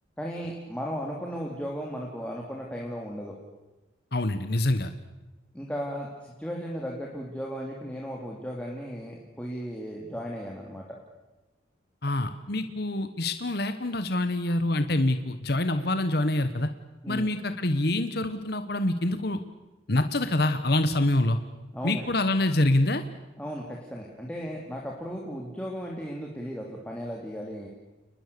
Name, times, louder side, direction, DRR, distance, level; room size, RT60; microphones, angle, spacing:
voice 1, 0.2-3.4 5.5-10.8 17.0-17.3 21.7-22.1 23.4-27.7, equal, 5° left, -2 dB, 2.7 m, -35 dB
voice 2, 4.1-4.9 12.0-16.7 17.1-19.4 19.9-21.4 21.8-23.0, left 1 dB, 55° left, 9 dB, 1.2 m, -26 dB
30.0 x 20.5 x 6.9 m, 1.1 s
head